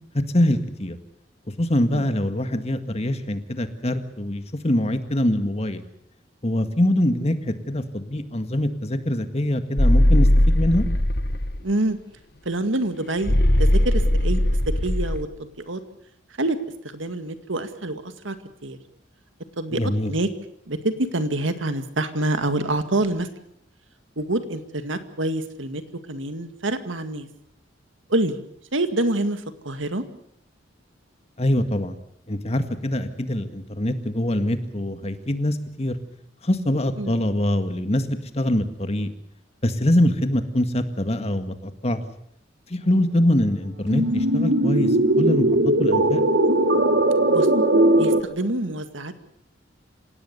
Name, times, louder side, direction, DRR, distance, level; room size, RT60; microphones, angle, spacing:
voice 1, 0.3-1.0 1.6-5.8 6.4-10.8 19.7-20.1 31.4-32.0 32.3-36.0 36.4-39.1 39.6-42.0 42.7-45.5 45.8-46.2, left 1 dB, 35° left, 9 dB, 1.9 m, -24 dB
sound 1, 9.8-11.6 13.2-15.2, left 1 dB, 55° left, 1.6 m, -19 dB
voice 2, 11.6-12.0 12.5-14.4 14.8-15.8 16.4-16.6 16.9-18.4 18.6-18.8 19.6-19.8 20.1-20.3 20.7-23.3 24.2-25.8 26.1-27.3 28.1-28.4 28.7-30.0 37.0-37.2 47.3-47.5 48.0-49.2, right 2 dB, 85° right, 9 dB, 2.1 m, -26 dB
sound 2, 43.9-48.2, right 1 dB, 65° right, 1.7 m, -19 dB
27.5 x 17.0 x 6.9 m, 0.72 s
head